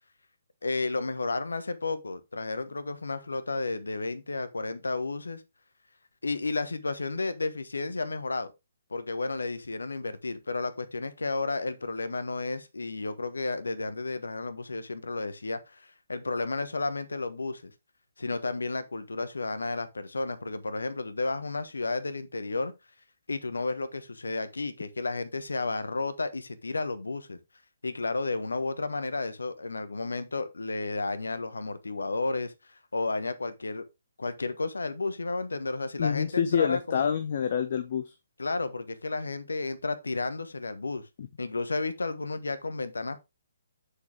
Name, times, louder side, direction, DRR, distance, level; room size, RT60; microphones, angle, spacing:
voice 1, 0.6-5.4 6.2-8.5 8.9-17.7 18.2-22.7 23.3-27.4 27.8-33.8 34.2-37.1 38.4-41.0 41.4-43.2, left 3 dB, 70° left, 1.1 m, -32 dB
voice 2, 36.0-38.2 41.2-41.3, left 7 dB, 45° left, 0.8 m, -27 dB
7.1 x 6.7 x 3.5 m
figure-of-eight pair, 135°, 0 cm